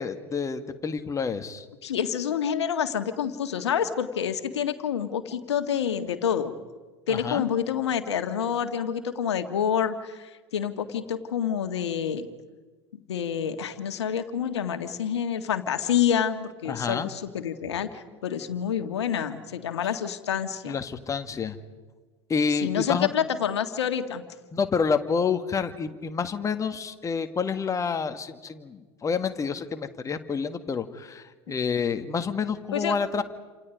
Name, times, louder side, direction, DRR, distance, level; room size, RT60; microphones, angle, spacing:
voice 1, 0.0-1.7 7.1-7.4 16.7-17.1 20.7-21.6 22.3-23.1 24.5-33.2, left 5 dB, 20° left, 8 dB, 1.8 m, -28 dB
voice 2, 1.8-6.5 7.1-12.3 13.1-20.8 22.6-24.3 32.7-33.0, left 8 dB, 70° left, 8 dB, 1.8 m, -28 dB
29.0 x 27.5 x 5.2 m, 1.3 s
figure-of-eight pair, 80°, 15 cm